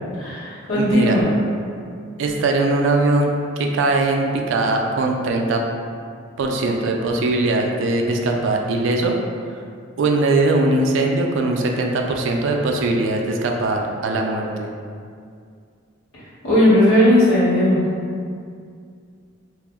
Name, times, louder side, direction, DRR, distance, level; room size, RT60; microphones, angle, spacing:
voice 1, 0.2-1.3 16.4-17.8, left 1 dB, 90° left, -11 dB, 1.2 m, -16 dB
voice 2, 0.8-1.2 2.2-5.6 6.4-9.2 10.0-14.7, right 2 dB, 60° right, 2 dB, 0.3 m, -20 dB
2.4 x 2.0 x 3.5 m, 2.3 s
head